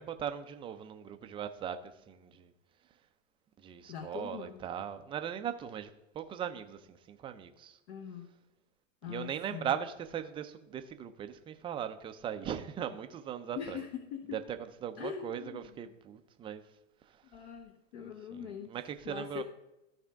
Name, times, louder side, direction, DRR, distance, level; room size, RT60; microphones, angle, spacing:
voice 1, 0.0-2.5 3.6-7.8 9.0-13.8 14.3-16.6 17.0-17.2 18.0-19.4, right 9 dB, 15° right, 0.4 m, -39 dB
voice 2, 3.9-4.6 7.9-8.3 9.0-9.7 13.5-14.4 15.0-15.6 17.3-18.8 19.0-19.4, left 8 dB, 55° left, 1.0 m, -42 dB
14.5 x 4.9 x 3.5 m
hypercardioid pair, 115°, 40 cm